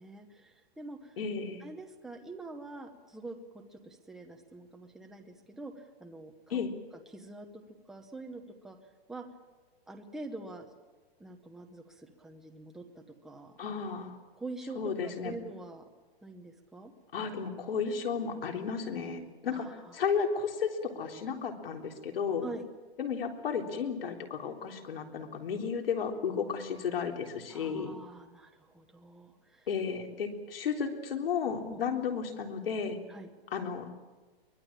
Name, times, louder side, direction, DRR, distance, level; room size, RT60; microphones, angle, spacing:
voice 1, 0.0-1.2 1.6-6.7 7.1-8.8 9.1-9.3 9.9-10.7 11.2-13.6 14.3-15.9 16.2-16.9 19.5-20.0 22.4-22.7 27.5-29.7 31.7-31.8 33.1-33.3, right 2 dB, ahead, 3 dB, 0.8 m, -45 dB
voice 2, 1.2-1.6 6.5-6.7 13.6-14.2 14.8-15.3 17.1-22.5 23.0-27.9 29.7-33.0 33.5-33.9, left 6 dB, 65° left, 3 dB, 3.7 m, -33 dB
24.0 x 20.0 x 8.8 m, 1.2 s
hypercardioid pair, 170°, 31 cm